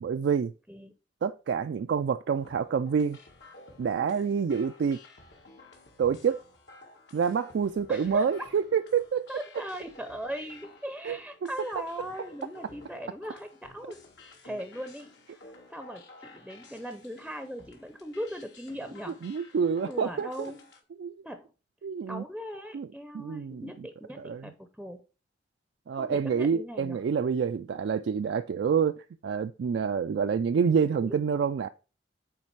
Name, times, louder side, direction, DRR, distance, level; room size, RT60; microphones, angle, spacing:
voice 1, 0.0-0.5 1.2-3.2 3.8-5.0 6.0-6.4 7.1-9.3 11.0-11.5 19.2-20.5 21.0-21.1 21.8-22.2 22.7-22.9 23.1-23.7 24.2-24.5 25.9-31.7, right 6 dB, 75° right, 0.3 m, -27 dB
sound 1, 2.3-20.8, left 2 dB, 80° left, 1.7 m, -53 dB
voice 2, 7.9-8.5 9.3-19.2 19.8-20.6 21.2-21.5 22.1-25.0 25.9-27.0 30.9-31.2, equal, ahead, 0.5 m, -39 dB
8.5 x 3.3 x 4.6 m
head